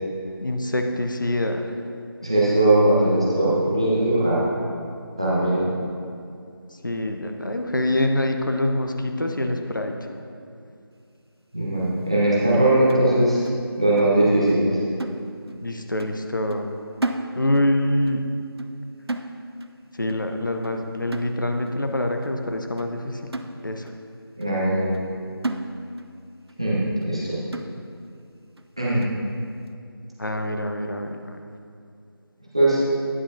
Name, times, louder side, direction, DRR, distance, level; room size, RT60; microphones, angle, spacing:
voice 1, 0.4-1.7 6.8-9.9 15.6-16.7 17.4-18.2 19.9-23.3 23.6-23.9 30.2-31.4, left 1 dB, 55° left, 4 dB, 0.6 m, -25 dB
voice 2, 2.2-4.5 5.2-5.6 11.5-13.4 13.8-14.7 24.4-24.9 26.6-27.4 28.8-29.1 32.5-32.8, right 1 dB, 15° right, -8 dB, 0.6 m, -20 dB
sound 1, 12.9-14.2 14.5-14.7 15.0-15.7 16.0-16.2 16.5-17.8 18.1-18.3 18.6-18.8 19.1-19.8 20.1-20.3 20.6-20.8 21.1-21.8 22.2-22.3 22.8-22.9 23.3-24.0 24.4-24.5 24.9-25.1 25.4-26.2 26.5-26.6 27.0-27.1 27.5-28.1 28.6-28.7 29.0-29.2, right 2 dB, 80° right, 0.5 m, -33 dB
9.5 x 8.1 x 2.6 m, 2.4 s
figure-of-eight pair, 170°, 13 cm